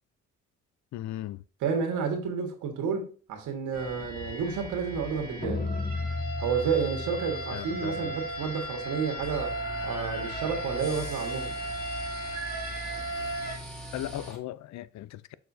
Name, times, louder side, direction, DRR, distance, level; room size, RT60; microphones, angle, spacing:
voice 1, 0.9-1.4 7.5-8.2 13.9-15.3, left 14 dB, 65° left, 0.5 m, -37 dB
voice 2, 1.6-5.6 6.4-9.5 9.8-11.5, right 6 dB, 85° right, 1.7 m, -30 dB
sound 1, 3.7-13.6, equal, 30° left, 2.0 m, -35 dB
sound 2, 9.2-14.4, equal, ahead, 2.2 m, -42 dB
6.5 x 6.4 x 2.7 m
cardioid pair, 90°, 30 cm